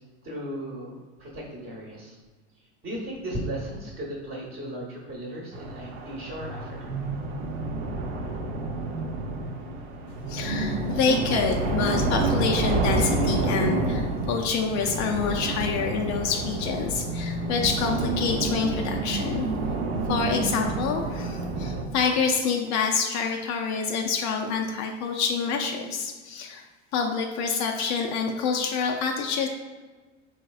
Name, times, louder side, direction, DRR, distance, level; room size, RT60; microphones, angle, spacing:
voice 1, 0.2-2.2 2.8-6.8, right 1 dB, 30° right, -4 dB, 1.0 m, -36 dB
sound 1, 5.5-21.8, right 2 dB, 70° right, 0.7 m, -29 dB
voice 2, 10.3-19.5 20.1-26.6 26.9-29.5, left 5 dB, 50° left, 2 dB, 0.5 m, -27 dB
4.2 x 3.2 x 2.3 m, 1.3 s
hypercardioid pair, 90°, 36 cm